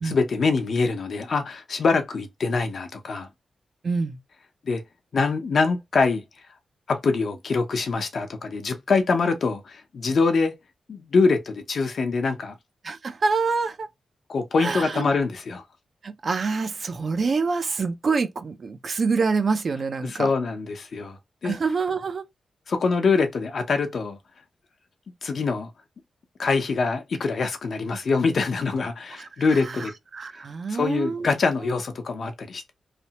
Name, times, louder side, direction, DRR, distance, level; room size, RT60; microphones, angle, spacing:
voice 1, 0.0-3.3 4.6-4.8 5.1-6.2 6.9-10.5 10.9-12.6 14.3-15.6 20.0-21.2 21.4-21.6 22.7-24.2 25.2-25.7 26.4-29.9 30.7-32.7, left 4 dB, 60° left, 0.7 m, -24 dB
voice 2, 3.8-4.2 12.8-13.9 14.6-15.1 16.0-20.3 21.4-22.2 29.2-31.3 31.6-31.8, right 4 dB, 50° right, 0.5 m, -26 dB
3.2 x 2.0 x 2.8 m
wide cardioid pair, 105°, 0 cm